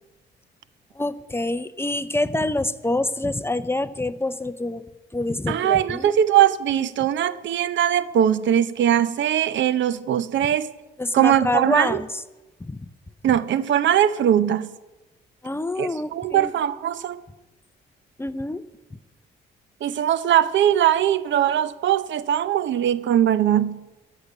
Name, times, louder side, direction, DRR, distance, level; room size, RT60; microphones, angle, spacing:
voice 1, 1.0-4.8 5.1-6.1 11.0-12.1 12.6-12.8 15.4-16.5 18.2-18.6, left 2 dB, 10° left, 0.6 m, -26 dB
voice 2, 5.5-10.7 11.1-12.0 13.2-14.7 15.8-17.2 19.8-23.8, right 10 dB, 70° right, 0.7 m, -21 dB
14.0 x 6.6 x 9.8 m
cardioid pair, 90°, 20 cm